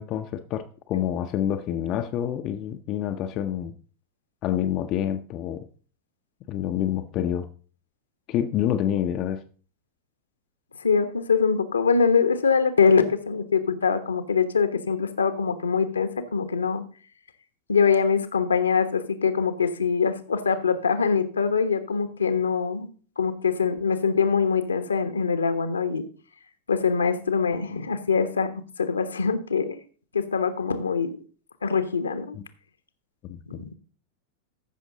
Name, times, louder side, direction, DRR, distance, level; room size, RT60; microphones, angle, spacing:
voice 1, 0.0-3.7 4.4-5.7 6.5-7.5 8.3-9.4 32.4-32.5 33.2-33.7, left 10 dB, 35° left, 0.7 m, -27 dB
voice 2, 10.8-16.8 17.7-22.9 23.2-26.0 26.7-28.5 28.8-29.8 30.1-31.2 31.6-32.4 33.5-33.7, left 5 dB, 75° left, 1.0 m, -23 dB
14.0 x 6.2 x 3.8 m
figure-of-eight pair, 90°, 0 cm